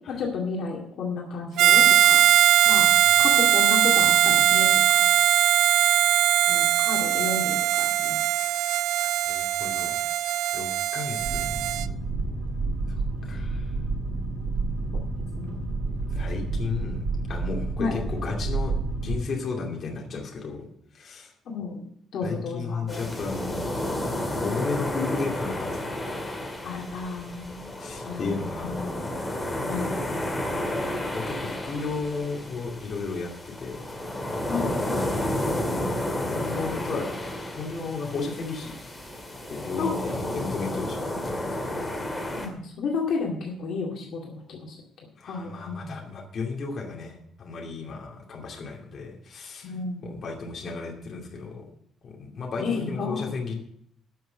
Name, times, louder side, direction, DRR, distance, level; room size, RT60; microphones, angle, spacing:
voice 1, 0.1-2.2 2.6-2.9 3.2-5.1 6.5-8.2 9.3-9.4 14.9-15.0 15.3-15.7 17.8-17.9 21.5-21.8 22.1-23.0 26.6-27.7 28.1-28.3 28.6-28.9 29.7-29.9 34.5-35.2 39.8-39.9 42.3-44.8 45.2-46.0 49.6-50.2 52.6-53.3, left 4 dB, 55° left, -1 dB, 2.2 m, -32 dB
Harmonica, 1.6-11.9, right 12 dB, 85° right, 0.4 m, -20 dB
voice 2, 2.6-3.0 9.0-10.0 10.5-11.4 12.9-13.7 16.1-18.7 19.0-20.7 20.9-21.3 22.2-23.7 24.4-25.9 27.8-28.8 29.4-30.1 31.1-33.8 35.6-37.1 37.5-38.7 39.5-41.9 45.2-49.7 50.0-51.7 52.0-53.5, left 4 dB, 40° left, 0 dB, 2.5 m, -34 dB
Boat Water vehicle, 11.2-19.2, right 3 dB, 60° right, 5.5 m, -30 dB
sound 1, 22.9-42.5, left 1 dB, 10° left, 2.2 m, -31 dB
12.0 x 6.3 x 7.6 m, 0.69 s
cardioid pair, 175°, 0 cm